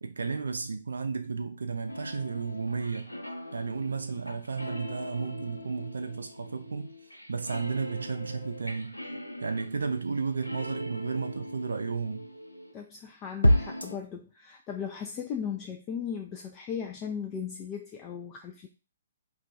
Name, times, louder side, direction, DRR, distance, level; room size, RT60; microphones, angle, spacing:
voice 1, 0.0-3.2 3.5-6.9 7.3-9.0 9.4-12.3, right 5 dB, 70° right, 0.3 m, -33 dB
sound 1, 1.9-12.7 13.4-14.0, left 1 dB, 90° left, 0.4 m, -34 dB
voice 2, 12.7-18.7, left 7 dB, 25° left, 0.3 m, -37 dB
2.3 x 2.2 x 3.8 m
figure-of-eight pair, 125°, 0 cm